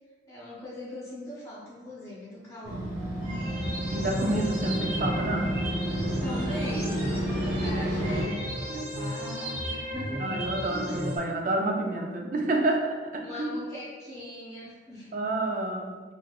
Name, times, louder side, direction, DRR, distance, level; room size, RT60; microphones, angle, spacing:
voice 1, 0.3-2.9 6.2-10.3 10.8-11.2 13.2-15.5, left 1 dB, 15° left, -8 dB, 0.8 m, -41 dB
Motorcycle, 2.6-8.2, equal, 60° right, 1.3 m, -31 dB
sound 1, 3.2-11.2, equal, 75° right, 1.2 m, -34 dB
voice 2, 3.8-5.5 10.2-13.5 15.1-16.0, right 2 dB, 40° right, 1 dB, 0.4 m, -29 dB
4.2 x 2.6 x 2.2 m, 1.4 s
head